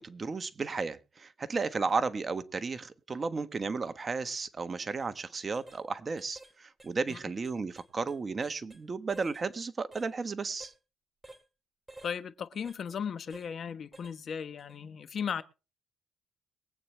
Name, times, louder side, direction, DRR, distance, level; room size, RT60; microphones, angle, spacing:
voice 1, 0.0-10.7, right 4 dB, 35° right, 1.3 m, -34 dB
sound 1, 4.9-5.1 5.5-5.8 6.2-6.5 6.8-8.8 9.1-9.5 9.9-10.1 10.6-10.8 11.2-11.5 11.9-12.2 12.7-12.8 13.3-13.5 13.9-14.2 14.6-14.7, right 2 dB, 10° right, 2.3 m, -52 dB
voice 2, 12.0-15.4, left 7 dB, 55° left, 1.1 m, -36 dB
22.5 x 8.8 x 3.3 m
cardioid pair, 90°, 0 cm